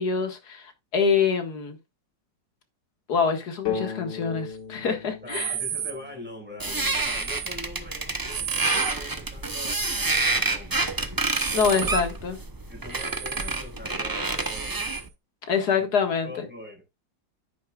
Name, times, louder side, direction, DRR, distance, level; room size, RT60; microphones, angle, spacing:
voice 1, 0.0-1.8 3.1-5.5 11.5-12.4 15.5-16.3, left 6 dB, 65° left, 2.3 m, -25 dB
sound 1, 3.7-7.3, left 7 dB, 85° left, 2.4 m, -36 dB
voice 2, 5.2-10.9 11.5-12.0 12.7-14.9 15.5-15.9 16.2-16.8, left 1 dB, 5° right, 5.7 m, -43 dB
sound 2, 5.3-6.0 6.8-7.5 8.3-9.0 9.7-10.4 11.3-12.1 12.9-13.6 14.4-15.1, right 9 dB, 70° right, 1.5 m, -34 dB
sound 3, 6.6-15.1, right 2 dB, 25° right, 0.4 m, -28 dB
10.5 x 9.5 x 2.4 m
omnidirectional pair, 1.8 m